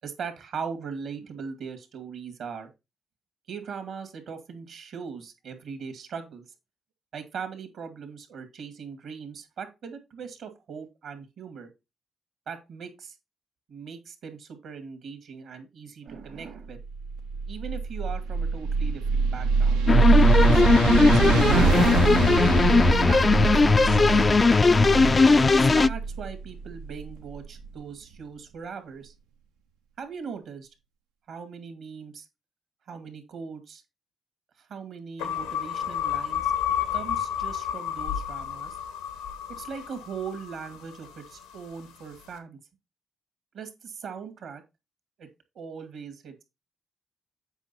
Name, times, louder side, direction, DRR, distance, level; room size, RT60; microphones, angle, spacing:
voice 1, 0.0-2.7 3.5-6.4 7.1-11.7 12.5-13.2 13.7-16.8 17.5-19.8 20.4-24.5 25.2-29.1 30.0-30.7 31.3-32.3 32.9-33.8 34.6-36.5 36.9-38.8 39.5-42.6 43.5-44.6 45.2-45.3 45.5-46.4, right 6 dB, 70° right, 8 dB, 2.2 m, -39 dB
sound 1, 16.8-27.6, right 5 dB, 85° right, 0.8 m, -24 dB
sound 2, 19.9-25.9, left 4 dB, 35° left, 0.4 m, -19 dB
sound 3, 35.2-41.6, left 9 dB, 90° left, 1.2 m, -31 dB
8.2 x 5.2 x 4.3 m, 0.25 s
hypercardioid pair, 45°, 0 cm